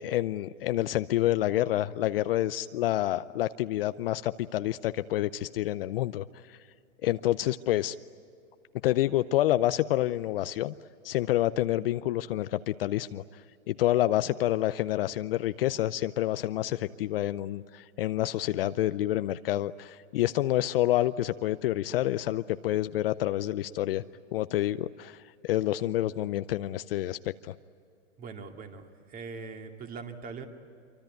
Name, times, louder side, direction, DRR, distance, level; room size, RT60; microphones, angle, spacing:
voice 1, 0.0-6.6 7.0-8.0 8.8-10.7 11.0-13.2 13.7-24.0 24.3-25.2 25.4-27.5, left 14 dB, 45° left, 13 dB, 0.6 m, -28 dB
voice 2, 28.2-30.4, right 5 dB, 20° right, 5 dB, 2.2 m, -41 dB
26.5 x 24.5 x 9.2 m, 2.4 s
hypercardioid pair, 140°, 39 cm